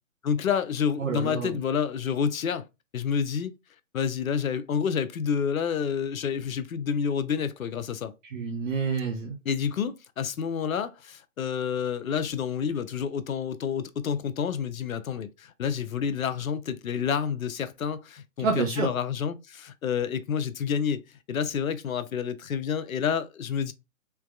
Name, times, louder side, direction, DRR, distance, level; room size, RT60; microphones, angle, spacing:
voice 1, 0.2-2.7 2.9-3.5 3.9-8.1 9.4-21.0 21.3-23.7, left 7 dB, 80° left, 0.6 m, -29 dB
voice 2, 1.0-1.5 8.3-9.4 18.4-18.9, right 5 dB, 65° right, 0.9 m, -28 dB
3.4 x 3.0 x 2.3 m
hypercardioid pair, 140°, 41 cm